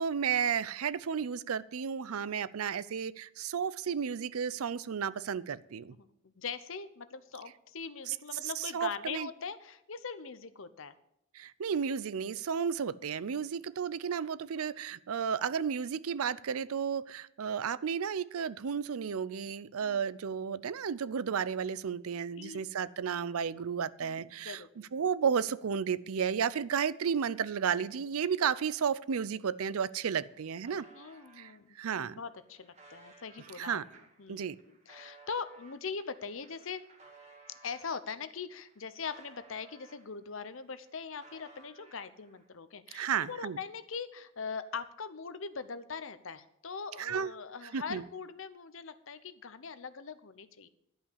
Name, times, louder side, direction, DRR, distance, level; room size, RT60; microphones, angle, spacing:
voice 1, 0.0-5.9 8.1-8.2 8.4-9.3 11.3-30.9 31.4-32.2 33.6-33.8 34.3-34.6 42.9-43.6 47.0-47.3 47.7-48.0, right 7 dB, 90° right, 18 dB, 0.5 m, -33 dB
voice 2, 5.9-10.9 13.5-13.7 19.8-20.0 22.4-22.6 24.0-24.2 24.4-24.7 30.9-31.8 32.1-33.8 34.2-36.8 37.6-50.7, left 5 dB, 70° left, 13 dB, 0.8 m, -41 dB
sound 1, 30.0-31.5 32.1-37.9 38.4-40.3 40.6-42.5, right 3 dB, 30° right, 2.1 m, -59 dB
12.5 x 5.6 x 8.4 m, 0.78 s
head